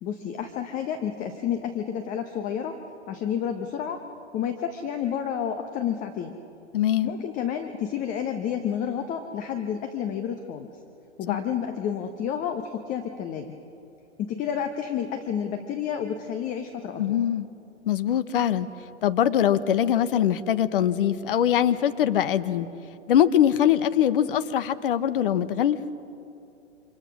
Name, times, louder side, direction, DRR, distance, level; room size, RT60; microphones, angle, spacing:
voice 1, 0.0-2.8 3.1-4.0 4.3-6.4 7.0-10.7 11.2-13.5 14.2-17.2, left 8 dB, 20° left, 6 dB, 1.2 m, -30 dB
voice 2, 6.7-7.1 11.3-11.4 17.0-17.5 17.9-18.7 19.0-22.7 23.1-25.8, left 10 dB, 50° left, 12 dB, 1.2 m, -22 dB
29.5 x 26.5 x 6.3 m, 2.7 s
figure-of-eight pair, 115°, 36 cm